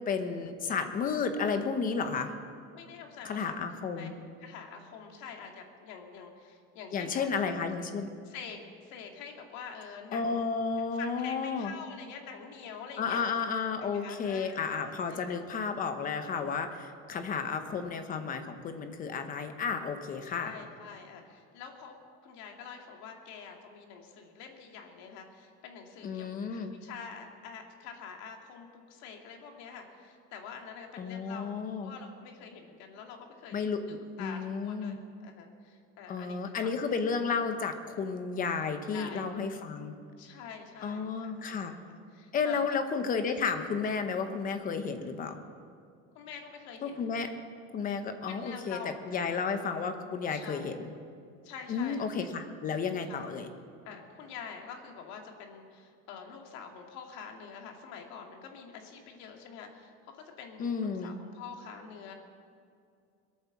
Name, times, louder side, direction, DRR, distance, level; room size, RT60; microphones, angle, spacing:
voice 1, 0.1-2.3 3.2-4.1 6.9-8.1 10.1-11.7 13.0-20.5 26.0-26.7 31.0-31.9 33.5-33.8 34.2-35.0 36.1-39.9 40.8-41.8 42.3-45.4 46.8-47.3 47.7-48.8 49.1-50.9 51.7-53.5 60.6-61.2, left 5 dB, 25° left, 7 dB, 1.0 m, -32 dB
voice 2, 2.7-3.6 3.9-4.1 4.4-7.3 7.6-7.7 8.2-10.4 10.9-13.2 13.6-15.4 16.7-16.8 20.2-31.5 31.8-33.6 34.2-36.7 38.9-39.3 40.2-41.8 42.1-42.8 46.1-47.4 48.3-49.4 50.3-50.7 51.4-52.1 53.1-53.3 53.8-62.1, left 6 dB, 60° left, 3 dB, 2.3 m, -46 dB
22.5 x 8.8 x 7.2 m, 2.3 s
cardioid pair, 175°, 31 cm